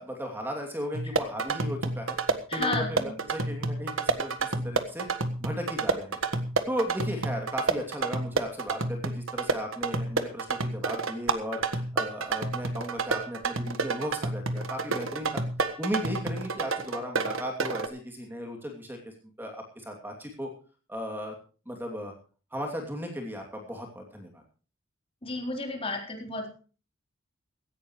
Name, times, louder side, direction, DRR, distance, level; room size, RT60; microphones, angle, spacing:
voice 1, 0.0-2.2 2.5-5.1 5.4-6.2 6.7-15.4 15.8-20.5 20.9-21.3 21.7-22.1 22.5-24.4, equal, 10° right, 2 dB, 2.8 m, -36 dB
sound 1, 0.9-17.9, right 3 dB, 85° right, 1.5 m, -30 dB
voice 2, 2.5-3.2 25.2-26.5, left 2 dB, 30° left, 2 dB, 3.9 m, -32 dB
17.0 x 16.0 x 3.2 m, 0.37 s
head